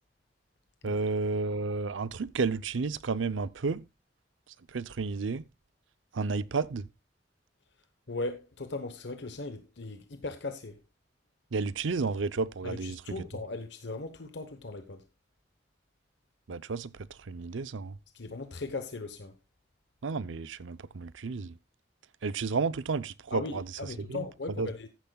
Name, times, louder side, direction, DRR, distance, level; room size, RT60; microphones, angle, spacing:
voice 1, 0.8-3.9 4.5-5.4 6.1-6.9 11.5-13.3 16.5-18.0 20.0-21.6 22.2-24.3 24.6-24.7, right 4 dB, 85° right, 0.6 m, -32 dB
voice 2, 8.1-10.8 12.6-15.0 18.1-19.3 23.3-24.9, left 3 dB, 65° left, 1.0 m, -38 dB
14.0 x 10.5 x 2.3 m
head